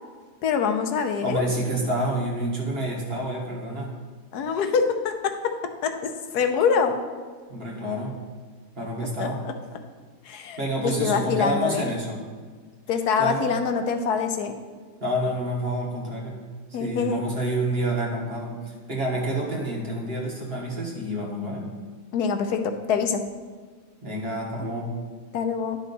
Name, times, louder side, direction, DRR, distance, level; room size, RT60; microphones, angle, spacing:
voice 1, 0.4-1.4 4.3-5.6 5.8-7.0 9.2-9.5 10.2-11.9 12.9-14.5 16.7-17.2 22.1-23.2 25.3-25.8, left 6 dB, 85° left, 6 dB, 1.3 m, -25 dB
voice 2, 1.2-3.9 7.5-8.2 8.8-9.4 10.6-12.2 13.2-13.5 15.0-16.4 16.7-21.7 24.0-24.9, right 1 dB, 40° right, -2 dB, 1.7 m, -28 dB
11.0 x 5.6 x 4.1 m, 1.5 s
omnidirectional pair, 1.7 m